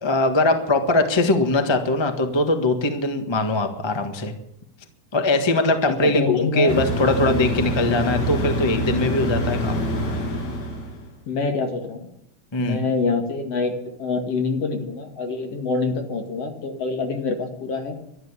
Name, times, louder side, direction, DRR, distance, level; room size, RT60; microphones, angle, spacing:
voice 1, 0.0-4.3 5.1-9.8 12.5-12.8, left 2 dB, 30° left, 6 dB, 0.5 m, -21 dB
voice 2, 6.0-6.8 8.4-8.6 11.3-12.1 12.6-17.9, left 4 dB, 55° left, 4 dB, 3.1 m, -26 dB
sound 1, 6.7-11.1, equal, 75° left, 4.0 m, -25 dB
12.5 x 12.0 x 8.3 m, 0.80 s
omnidirectional pair, 3.4 m